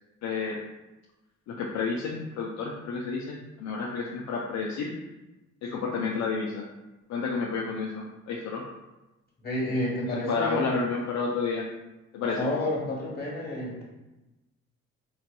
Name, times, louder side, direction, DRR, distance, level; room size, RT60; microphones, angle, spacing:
voice 1, 0.2-0.6 1.5-4.9 5.6-6.6 7.1-8.6 10.1-11.6 12.1-12.5, left 4 dB, 65° left, -2 dB, 0.5 m, -30 dB
voice 2, 9.4-10.8 12.4-13.8, left 1 dB, 30° left, -4 dB, 1.4 m, -30 dB
3.8 x 2.8 x 2.2 m, 1.0 s
cardioid pair, 90°, 30 cm